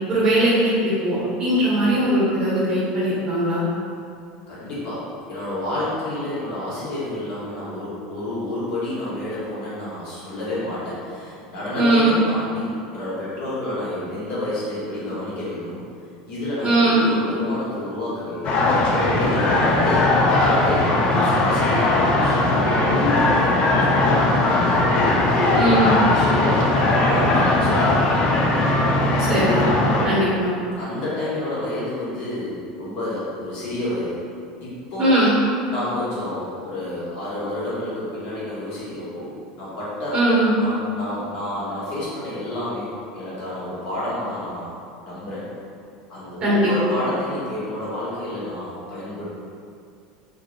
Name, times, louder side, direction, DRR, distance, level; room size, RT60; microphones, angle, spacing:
voice 1, 0.1-3.6 11.8-12.1 16.6-17.0 25.5-26.0 29.2-29.7 30.0-30.5 35.0-35.4 40.1-40.5 46.4-46.9, right 1 dB, 40° right, -8 dB, 0.8 m, -19 dB
voice 2, 4.5-5.0 5.3-15.8 16.3-18.6 19.0-20.9 21.2-25.7 26.1-28.3 30.8-34.2 34.6-35.1 35.7-40.2 40.6-44.8 45.0-45.4 46.1-49.3, left 1 dB, 60° left, -9 dB, 1.3 m, -29 dB
sound 1, 18.4-30.1, left 2 dB, 45° left, 0.4 m, -19 dB
3.0 x 2.6 x 2.6 m, 2.4 s
supercardioid pair, 120°, 2 cm